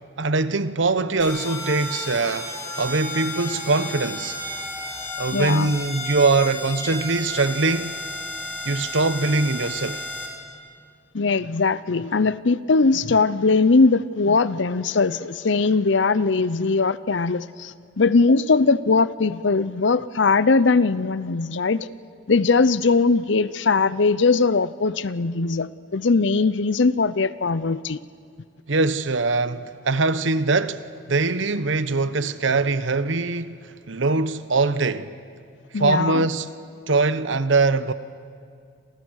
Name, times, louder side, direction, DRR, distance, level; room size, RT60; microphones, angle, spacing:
voice 1, 0.2-4.4 5.2-7.9 8.6-10.0 28.7-35.1 35.7-36.5 36.9-37.9, right 3 dB, 70° right, 1.0 m, -22 dB
sound 1, 1.2-10.3, left 2 dB, 10° left, 5.2 m, -33 dB
voice 2, 5.3-5.7 11.1-21.9 22.3-28.0 35.7-36.2, left 4 dB, 65° left, 0.7 m, -20 dB
29.5 x 27.5 x 6.4 m
head